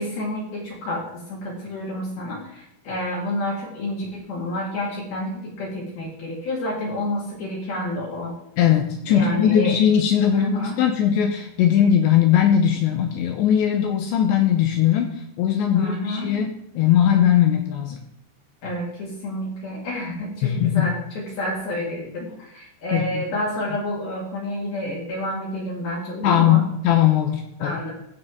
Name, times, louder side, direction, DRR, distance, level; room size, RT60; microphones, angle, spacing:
voice 1, 0.0-8.3 9.1-9.8 10.3-10.8 15.7-16.3 18.6-26.6 27.6-27.9, left 1 dB, 55° left, -3 dB, 3.7 m, -29 dB
voice 2, 8.6-18.0 20.4-20.9 22.9-23.3 26.2-27.8, left 9 dB, 80° left, 5 dB, 2.7 m, -19 dB
16.0 x 7.0 x 3.7 m, 0.81 s
omnidirectional pair, 6.0 m